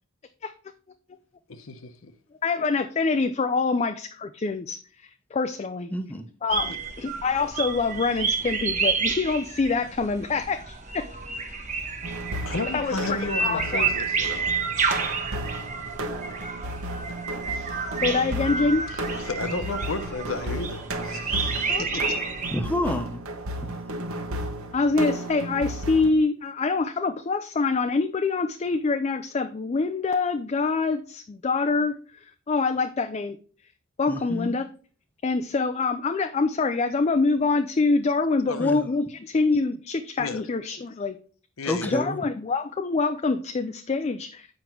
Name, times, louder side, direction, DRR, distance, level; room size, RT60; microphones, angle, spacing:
voice 1, 1.5-2.1 6.6-6.8 12.4-14.6 17.5-17.7 18.9-22.2 38.5-38.7 40.2-40.4 41.6-41.9, left 3 dB, 65° left, 0.9 m, -33 dB
voice 2, 2.4-5.9 6.4-11.1 12.7-13.9 18.0-18.9 21.7-22.1 24.7-33.4 34.0-34.7 35.2-41.1 41.8-44.5, left 4 dB, 30° left, 0.3 m, -25 dB
voice 3, 5.9-6.3 22.5-23.2 23.6-23.7 34.1-34.5 38.6-38.9 41.7-42.2, left 1 dB, 5° left, 0.7 m, -29 dB
sound 1, 6.5-22.6, right 5 dB, 35° right, 1.1 m, -30 dB
sound 2, 12.0-26.1, right 1 dB, 75° right, 1.1 m, -34 dB
7.8 x 5.2 x 4.4 m
head